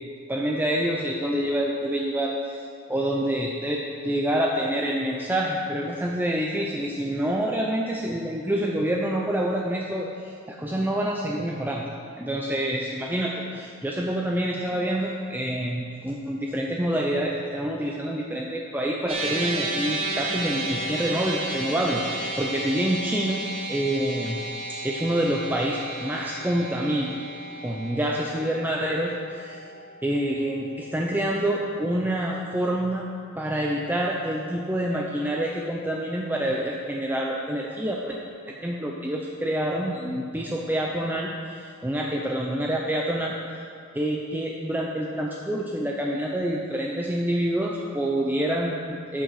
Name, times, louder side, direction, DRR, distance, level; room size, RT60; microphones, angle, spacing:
voice 1, 0.3-2.6 2.9-11.8 12.2-23.4 23.7-24.4 24.7-27.2 27.6-29.7 30.0-33.1 33.4-38.2 38.5-43.3 43.9-49.2, right 1 dB, 10° right, -1 dB, 0.5 m, -27 dB
sound 1, 19.1-31.5, right 2 dB, 30° right, 1.6 m, -33 dB
12.0 x 6.5 x 4.8 m, 2.3 s
head